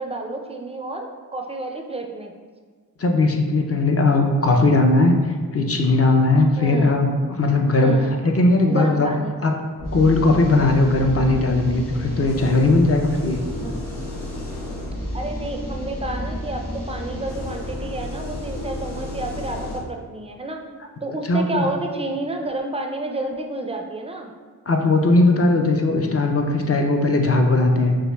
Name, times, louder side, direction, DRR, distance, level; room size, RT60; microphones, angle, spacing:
voice 1, 0.0-2.3 6.6-6.9 7.8-8.1 8.7-9.3 13.6-13.8 15.1-20.6 21.0-24.3, right 2 dB, 15° right, 3 dB, 0.4 m, -30 dB
voice 2, 3.0-7.1 7.4-9.1 9.4-9.5 9.9-13.4 21.3-21.7 24.7-28.0, left 2 dB, 40° left, 2 dB, 0.4 m, -18 dB
sound 1, 9.8-19.8, left 1 dB, 60° left, 1.2 m, -31 dB
6.1 x 2.4 x 2.2 m, 1.5 s
wide cardioid pair, 65°, 36 cm